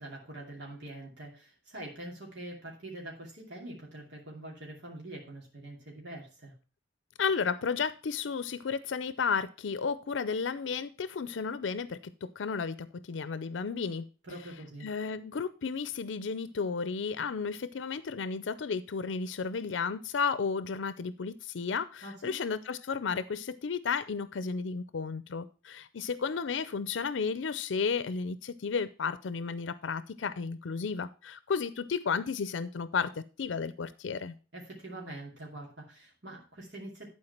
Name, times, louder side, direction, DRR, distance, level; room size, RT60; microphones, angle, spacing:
voice 1, 0.0-6.5 14.3-14.9 22.0-22.3 34.5-37.1, right 1 dB, 70° right, 2.8 m, -44 dB
voice 2, 7.2-14.1 14.8-34.3, left 5 dB, 90° left, 0.5 m, -33 dB
11.0 x 4.6 x 5.7 m
head